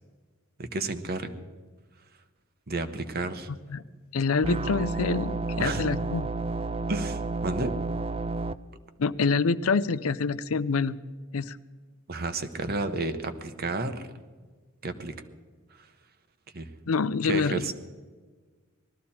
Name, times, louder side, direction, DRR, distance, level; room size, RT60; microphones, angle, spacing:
voice 1, 0.6-1.3 2.7-3.5 5.6-5.9 6.9-7.7 12.1-14.0 14.8-15.1 15.7-15.9 16.5-16.7 17.2-17.7, right 2 dB, 50° right, 9 dB, 1.0 m, -31 dB
voice 2, 4.1-6.3 9.0-10.9 11.3-11.6 16.9-17.6, left 4 dB, 85° left, 16 dB, 0.5 m, -26 dB
sound 1, 4.4-8.5, right 3 dB, 30° right, 0.4 m, -31 dB
19.5 x 13.5 x 4.3 m, 1.4 s
head